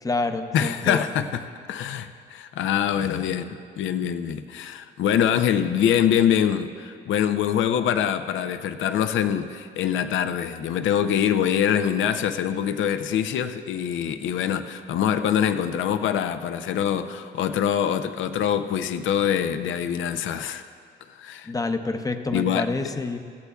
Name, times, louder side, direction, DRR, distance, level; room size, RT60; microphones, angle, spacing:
voice 1, 0.0-1.0 21.5-23.2, left 3 dB, 15° left, 7 dB, 0.7 m, -27 dB
voice 2, 0.5-20.6 21.1-21.5 22.3-22.9, left 9 dB, 75° left, 10 dB, 0.6 m, -24 dB
16.5 x 14.0 x 2.3 m, 2.3 s
cardioid pair, 90°, 20 cm